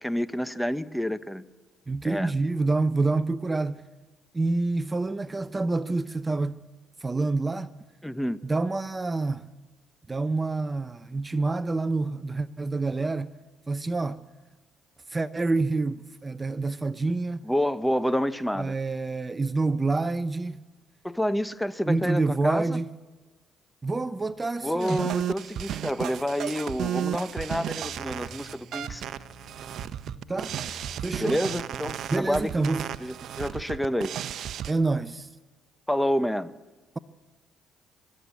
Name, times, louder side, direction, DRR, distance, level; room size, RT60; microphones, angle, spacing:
voice 1, 0.0-1.4 2.0-2.3 8.0-8.4 17.4-18.7 21.0-22.8 24.6-29.0 31.2-32.7 33.0-34.1 35.9-36.6, equal, 5° left, 0.9 m, -28 dB
voice 2, 1.9-3.8 4.3-6.6 7.0-7.7 8.4-9.5 10.1-13.3 13.7-14.2 15.1-17.4 18.6-20.6 21.9-22.9 23.8-25.1 30.3-30.6 31.0-31.4 32.1-32.9 34.7-35.3, right 3 dB, 25° right, 0.7 m, -27 dB
sound 1, 24.8-34.7, right 10 dB, 65° right, 0.7 m, -33 dB
sound 2, 27.8-33.1, left 1 dB, 50° left, 4.3 m, -49 dB
24.0 x 13.5 x 8.4 m
supercardioid pair, 75°, 0 cm